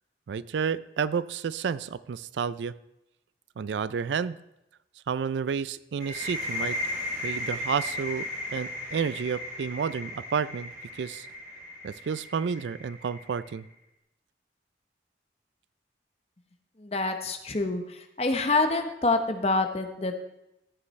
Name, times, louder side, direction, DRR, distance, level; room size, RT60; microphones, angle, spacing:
voice 1, 0.3-2.8 3.6-4.4 5.1-6.8 7.2-10.7 11.0-11.3 11.8-13.7, right 6 dB, 85° right, 17 dB, 0.4 m, -30 dB
sound 1, 6.0-13.5, left 1 dB, 50° right, 2.4 m, -36 dB
voice 2, 16.8-20.1, left 3 dB, 35° left, 6 dB, 0.9 m, -27 dB
14.5 x 8.4 x 3.2 m, 0.88 s
head